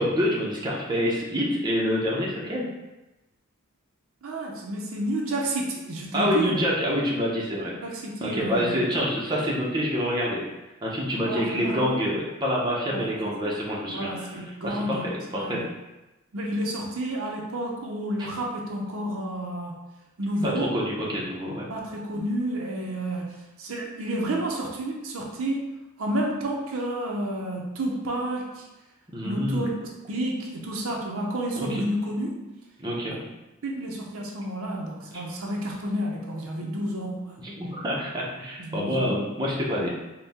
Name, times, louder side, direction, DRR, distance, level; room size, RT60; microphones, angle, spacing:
voice 1, 0.0-2.7 6.1-7.7 8.2-10.4 10.8-15.6 20.4-21.7 29.1-29.7 31.6-31.8 32.8-33.2 37.4-39.9, equal, 20° right, -4 dB, 0.7 m, -27 dB
voice 2, 4.2-6.6 7.5-8.8 11.1-12.0 12.9-13.1 13.9-15.0 15.3-15.7 16.3-19.7 20.2-20.7 21.7-25.7 26.0-28.7 29.2-29.7 30.1-32.4 33.6-37.4 38.7-39.1, right 1 dB, 70° right, -1 dB, 0.7 m, -30 dB
4.3 x 2.2 x 3.4 m, 1.0 s
head